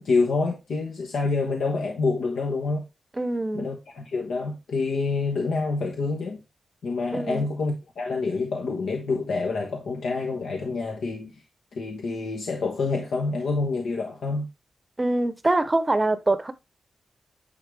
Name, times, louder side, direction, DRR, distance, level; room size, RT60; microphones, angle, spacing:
voice 1, 0.0-2.8 3.5-6.4 6.8-11.3 11.7-14.5, left 3 dB, 90° left, 1.2 m, -27 dB
voice 2, 3.2-3.7 7.1-7.5 15.0-16.5, right 2 dB, 20° right, 0.7 m, -24 dB
9.9 x 3.8 x 3.3 m
wide cardioid pair, 110°, 0 cm